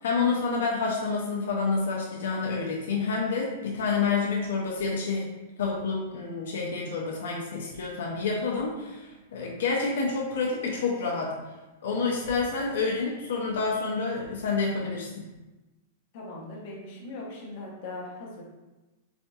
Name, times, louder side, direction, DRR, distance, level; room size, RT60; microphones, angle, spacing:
voice 1, 0.0-5.3 5.6-11.3 11.8-15.2, left 4 dB, 85° left, -2 dB, 0.5 m, -28 dB
voice 2, 16.1-18.4, left 2 dB, 45° left, -3 dB, 0.9 m, -40 dB
4.2 x 2.7 x 2.3 m, 1.1 s
supercardioid pair, 165°, 0 cm